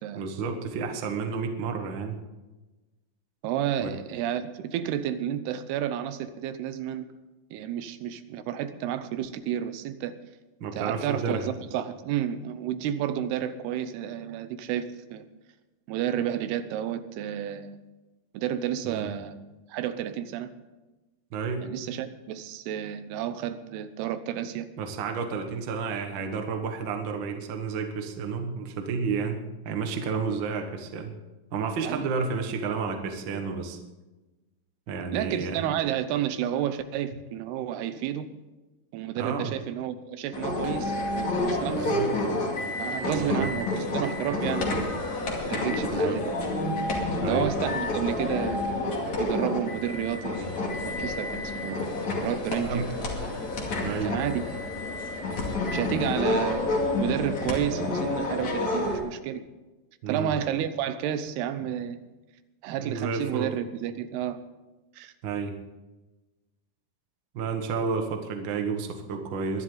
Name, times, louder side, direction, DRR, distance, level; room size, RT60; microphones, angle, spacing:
voice 1, 0.1-2.2 3.8-3.9 10.6-11.5 18.8-19.1 21.3-21.7 24.8-31.1 31.5-33.8 34.9-35.7 39.2-39.5 41.6-42.1 43.2-43.5 45.8-46.2 47.2-47.5 52.6-52.9 53.8-54.1 60.0-60.4 62.8-63.5 65.2-65.5 67.3-69.6, right 5 dB, 60° right, 5 dB, 1.3 m, -31 dB
voice 2, 3.4-7.1 7.5-10.1 10.8-15.2 15.9-17.8 18.3-19.4 19.7-20.5 21.6-24.7 31.8-32.0 35.1-38.3 38.9-42.0 42.8-45.0 45.5-46.2 47.2-50.5 50.9-51.8 52.2-53.1 54.0-54.4 55.7-59.4 60.1-62.0 62.6-64.4 65.0-65.1, right 10 dB, 85° right, 11 dB, 2.9 m, -31 dB
sound 1, 40.3-59.0, left 2 dB, 50° left, 3.5 m, -29 dB
22.5 x 11.0 x 3.9 m, 1.1 s
omnidirectional pair, 4.5 m